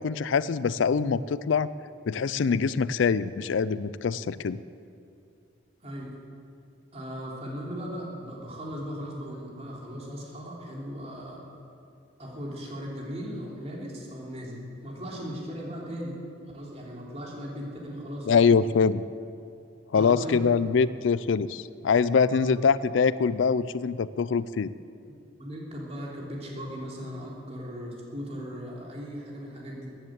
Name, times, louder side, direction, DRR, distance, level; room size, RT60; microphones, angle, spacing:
voice 1, 0.0-1.7 2.1-4.6 18.3-19.0 19.9-24.7, left 5 dB, 75° left, 17 dB, 0.4 m, -24 dB
voice 2, 5.8-6.2 6.9-11.4 12.2-16.2 16.5-18.5 19.9-20.4 22.3-22.4 25.1-29.9, equal, 35° right, -3 dB, 3.2 m, -38 dB
14.5 x 10.0 x 8.0 m, 2.5 s
head